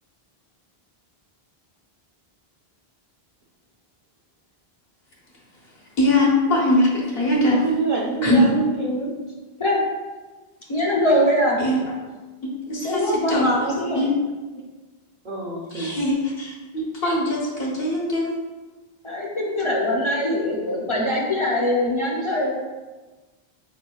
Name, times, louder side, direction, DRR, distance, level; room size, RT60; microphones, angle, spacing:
voice 1, 6.0-7.6 8.2-8.5 11.6-11.8 12.4-13.7 13.9-14.1 15.7-18.3, left 1 dB, 75° left, -3 dB, 1.3 m, -21 dB
voice 2, 7.5-9.1 15.2-15.9, right 3 dB, 50° right, -3 dB, 0.8 m, -26 dB
voice 3, 10.7-11.6 12.8-14.0 19.0-22.5, left 1 dB, 35° left, -3 dB, 0.6 m, -22 dB
4.3 x 4.2 x 2.3 m, 1.2 s
omnidirectional pair, 1.0 m